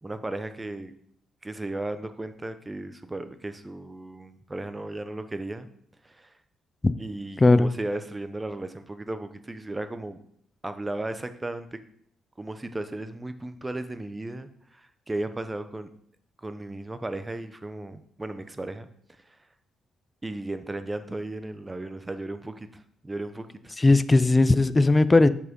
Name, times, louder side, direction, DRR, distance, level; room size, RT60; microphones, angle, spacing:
voice 1, 0.0-1.0 1.4-5.7 6.0-6.3 7.0-10.2 10.6-11.8 12.4-15.9 16.4-18.9 19.2-19.4 20.2-23.7, right 2 dB, 15° right, 10 dB, 0.7 m, -35 dB
voice 2, 7.4-7.7 23.8-25.3, left 2 dB, 20° left, 15 dB, 0.4 m, -18 dB
6.1 x 5.6 x 5.3 m, 0.66 s
cardioid pair, 90°, 0 cm